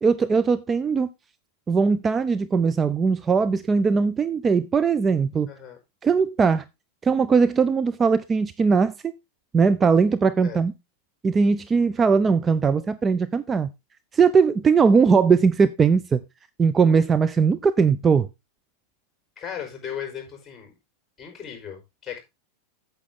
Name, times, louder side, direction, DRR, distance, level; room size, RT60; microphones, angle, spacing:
voice 1, 0.0-1.1 1.7-5.5 6.0-6.6 7.0-8.9 9.5-10.7 11.2-13.7 14.1-16.2 16.6-18.3, right 5 dB, 25° right, 0.6 m, -20 dB
voice 2, 5.5-5.8 10.4-10.6 19.4-20.7 21.2-22.2, left 8 dB, 25° left, 5.1 m, -36 dB
8.5 x 7.6 x 3.8 m
hypercardioid pair, 100°, 0 cm